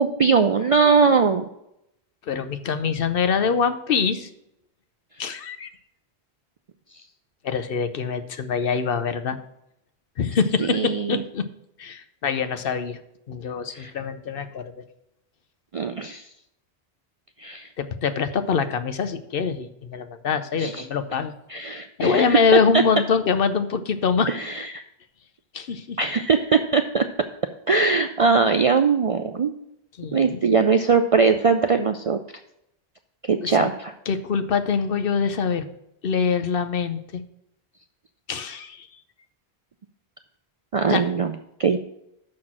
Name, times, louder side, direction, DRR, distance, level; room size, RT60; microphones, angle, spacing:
voice 1, 0.0-1.5 10.6-11.2 13.7-13.9 15.7-16.2 17.4-17.7 20.6-20.7 21.5-22.4 24.3-24.8 26.0-27.0 27.7-29.5 30.1-32.2 33.3-33.9 40.7-41.3 41.6-41.8, right 5 dB, 50° right, 7 dB, 0.4 m, -20 dB
voice 2, 2.3-4.3 5.2-5.7 7.4-9.4 10.2-11.5 11.8-13.0 13.3-14.8 17.8-21.3 21.6-24.4 25.5-26.0 30.0-30.4 33.4-33.7 34.1-35.7 36.0-37.2 38.3-38.9 40.9-41.0, left 6 dB, 60° left, 10 dB, 0.9 m, -24 dB
6.4 x 6.0 x 7.4 m, 0.81 s
omnidirectional pair, 1.1 m